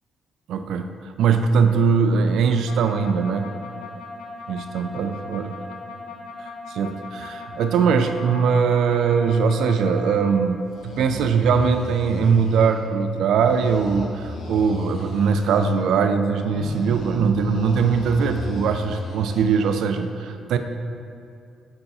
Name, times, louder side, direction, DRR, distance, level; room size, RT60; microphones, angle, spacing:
voice 1, 0.5-3.5 4.5-5.6 6.4-20.6, right 6 dB, 75° right, 7 dB, 0.4 m, -21 dB
Halo style science fiction shield, 2.7-10.3 10.7-12.9 13.3-15.9 16.4-19.8, left 3 dB, 70° left, 0.9 m, -35 dB
6.5 x 4.6 x 4.1 m, 2.5 s
cardioid pair, 90°, 0 cm